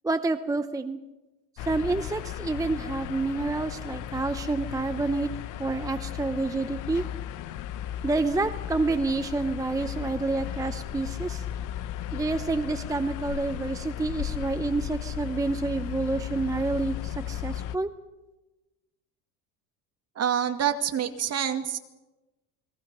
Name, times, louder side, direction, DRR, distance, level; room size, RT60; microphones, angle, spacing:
voice 1, 0.0-1.0 1.6-5.3 5.6-7.0 8.0-11.5 12.1-17.9, right 3 dB, 10° right, 9 dB, 0.8 m, -28 dB
sound 1, 1.6-17.8, left 11 dB, 50° left, 1.0 m, -35 dB
voice 2, 20.2-21.8, right 9 dB, 35° right, 7 dB, 2.2 m, -27 dB
29.0 x 22.0 x 5.5 m, 1.1 s
supercardioid pair, 120°, 41 cm